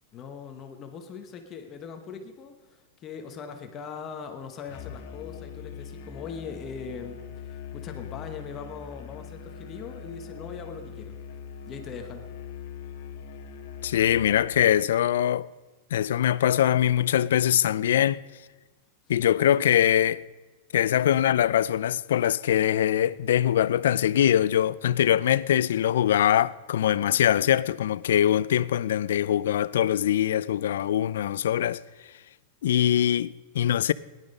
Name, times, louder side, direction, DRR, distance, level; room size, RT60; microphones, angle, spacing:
voice 1, 0.1-11.2 11.7-12.2, left 6 dB, 20° left, 0.9 m, -40 dB
Musical instrument, 4.7-14.6, left 7 dB, 45° left, 1.4 m, -41 dB
voice 2, 13.8-15.5 15.9-18.2 19.1-20.3 20.7-31.8 32.6-33.9, left 11 dB, 80° left, 0.4 m, -23 dB
19.0 x 11.0 x 5.3 m
supercardioid pair, 175°, 0 cm